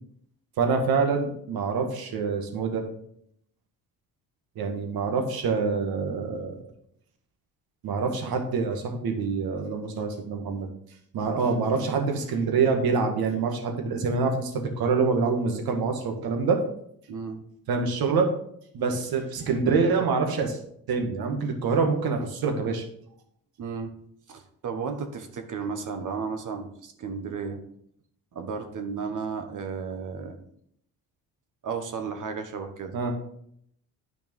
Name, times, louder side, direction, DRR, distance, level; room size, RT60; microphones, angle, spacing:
voice 1, 0.6-2.9 4.6-6.6 7.8-10.7 11.1-16.6 17.7-18.3 18.7-20.6 20.9-22.8 32.9-33.1, right 4 dB, 70° right, 4 dB, 1.9 m, -26 dB
voice 2, 17.1-17.4 23.6-23.9 24.3-27.6 28.3-30.4 31.6-32.9, right 5 dB, 55° right, 6 dB, 1.5 m, -33 dB
9.8 x 5.2 x 5.4 m, 0.70 s
cardioid pair, 95°, 38 cm